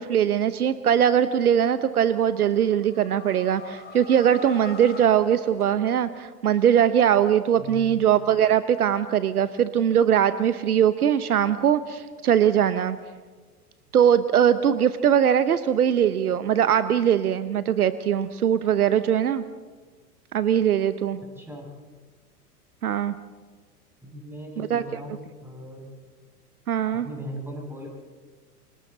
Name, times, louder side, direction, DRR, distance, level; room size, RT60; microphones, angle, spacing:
voice 1, 0.0-13.0 13.9-19.4 20.3-21.2 22.8-23.1 24.6-24.8 26.7-27.1, right 9 dB, 70° right, 13 dB, 1.0 m, -21 dB
sound 1, 2.4-6.2, left 4 dB, 20° left, 4.9 m, -43 dB
voice 2, 7.6-7.9 21.4-21.7 24.0-25.9 26.9-27.9, left 1 dB, 5° right, 0 dB, 6.1 m, -38 dB
29.5 x 25.0 x 4.0 m, 1.4 s
figure-of-eight pair, 100°, 46 cm